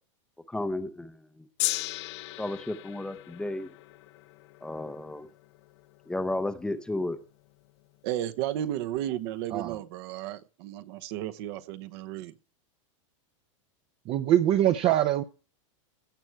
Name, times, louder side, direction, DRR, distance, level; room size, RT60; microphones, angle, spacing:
voice 1, 0.5-1.5 2.4-3.7 4.6-5.3 6.1-7.2, left 2 dB, 5° left, 0.7 m, -33 dB
Gong, 1.6-8.0 8.7-8.8, left 18 dB, 55° left, 0.7 m, -38 dB
voice 2, 8.0-12.3, right 12 dB, 50° right, 0.9 m, -33 dB
voice 3, 14.1-15.2, right 12 dB, 35° right, 0.7 m, -23 dB
16.0 x 6.2 x 4.6 m
supercardioid pair, 145°, 17 cm